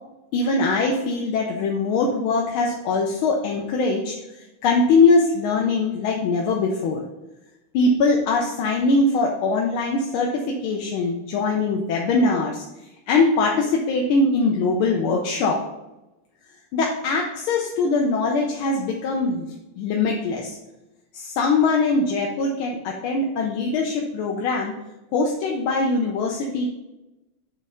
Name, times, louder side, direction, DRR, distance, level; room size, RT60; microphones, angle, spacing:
voice 1, 0.3-7.1 7.7-12.6 13.1-15.6 16.7-19.5 19.8-20.6 21.1-24.8 25.1-26.7, left 3 dB, 80° left, 0 dB, 1.6 m, -22 dB
7.8 x 3.2 x 4.9 m, 0.99 s
omnidirectional pair, 2.3 m